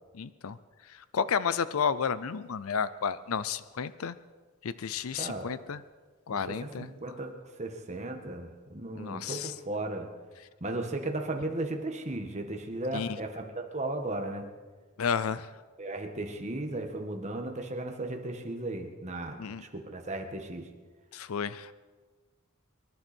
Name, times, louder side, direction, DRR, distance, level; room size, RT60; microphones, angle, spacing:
voice 1, 0.1-0.6 1.1-4.2 4.6-5.8 6.3-6.9 8.9-9.5 12.9-13.1 15.0-15.5 19.4-19.6 21.1-21.7, left 6 dB, 80° left, 16 dB, 0.5 m, -31 dB
voice 2, 6.3-10.1 10.6-14.5 15.8-20.7, right 2 dB, 35° right, 4 dB, 1.7 m, -36 dB
25.5 x 11.5 x 4.5 m, 1.4 s
head